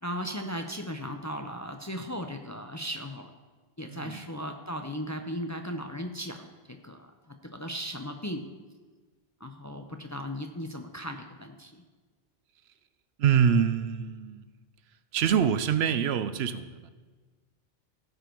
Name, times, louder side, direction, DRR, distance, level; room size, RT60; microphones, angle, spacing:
voice 1, 0.0-3.3 3.8-8.4 9.4-11.8, equal, 20° left, 5 dB, 0.5 m, -37 dB
voice 2, 3.9-4.2 13.2-14.4 15.1-16.9, right 8 dB, 85° right, 13 dB, 0.9 m, -25 dB
15.5 x 5.3 x 4.5 m, 1.3 s
omnidirectional pair, 1.0 m